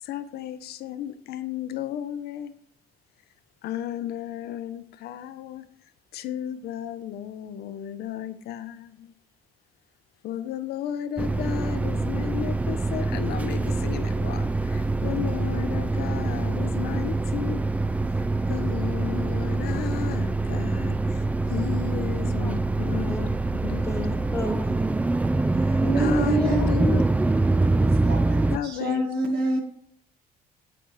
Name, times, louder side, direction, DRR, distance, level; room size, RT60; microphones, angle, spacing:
voice 1, 0.0-2.5 3.6-5.6 6.1-9.1 10.2-17.6 18.1-23.3 23.6-23.8 25.5-27.0 28.5-29.1, left 10 dB, 70° left, 0.7 m, -33 dB
sound 1, 11.2-28.6, right 2 dB, 10° right, 0.3 m, -25 dB
voice 2, 22.9-24.9, equal, 15° left, 1.3 m, -35 dB
voice 3, 25.8-26.7 27.5-27.6 28.0-29.6, right 2 dB, 75° right, 1.5 m, -27 dB
9.3 x 8.1 x 3.1 m
cardioid pair, 110°, 17 cm